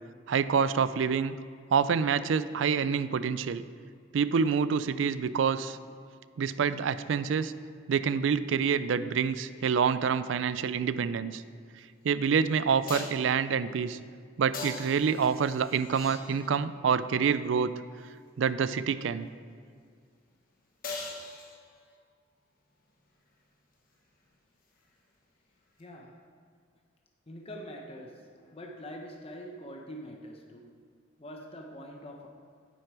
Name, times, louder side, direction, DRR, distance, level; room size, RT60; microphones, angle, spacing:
voice 1, 0.3-1.3 1.7-3.6 4.1-5.8 6.4-7.5 7.9-11.4 12.0-14.0 14.4-17.7 18.4-19.3, right 6 dB, 70° right, 14 dB, 0.4 m, -27 dB
sound 1, 11.8-11.9 12.9-13.3 14.5-16.7 20.8-22.0 25.8-25.9, left 3 dB, 45° left, 1.3 m, -41 dB
voice 2, 25.8-26.2 27.3-30.7 31.2-32.3, equal, 30° left, 1 dB, 0.7 m, -44 dB
9.6 x 7.6 x 4.7 m, 2.1 s
head